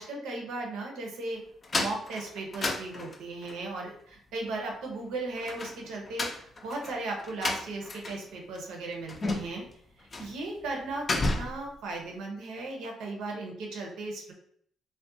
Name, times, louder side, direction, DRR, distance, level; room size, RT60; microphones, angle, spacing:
voice 1, 0.0-1.4 1.7-6.3 6.6-9.6 10.0-14.3, right 2 dB, 90° right, 1 dB, 0.7 m, -36 dB
sound 1, 1.6-3.6 5.4-8.3 8.5-8.6 9.1-9.7 10.1-10.4 10.7-11.7, left 2 dB, 35° left, 0.4 m, -32 dB
2.4 x 2.1 x 2.6 m, 0.63 s
cardioid pair, 90°, 0 cm